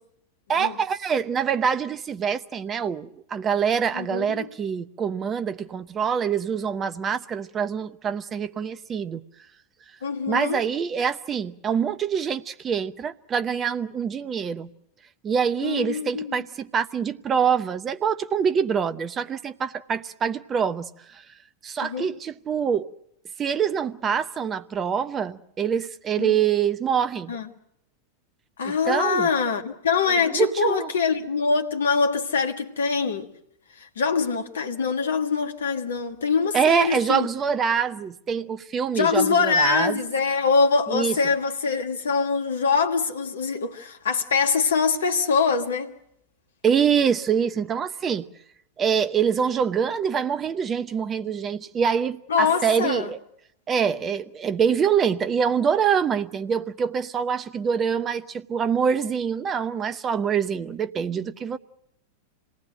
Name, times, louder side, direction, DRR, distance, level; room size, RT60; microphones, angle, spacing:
voice 1, 0.5-9.2 10.3-14.7 15.2-21.2 21.6-22.8 23.4-27.3 28.6-29.3 30.3-30.9 36.5-40.0 40.9-41.1 46.6-48.2 48.8-53.2 53.7-61.6, right 7 dB, 25° right, 0.9 m, -25 dB
voice 2, 3.9-4.5 10.0-10.6 15.6-16.4 21.8-22.1 26.2-26.4 27.3-27.5 28.6-33.3 33.8-37.3 38.9-46.0 52.3-53.1, left 5 dB, 65° left, 1.6 m, -24 dB
26.5 x 19.0 x 7.8 m
figure-of-eight pair, 90°, 0 cm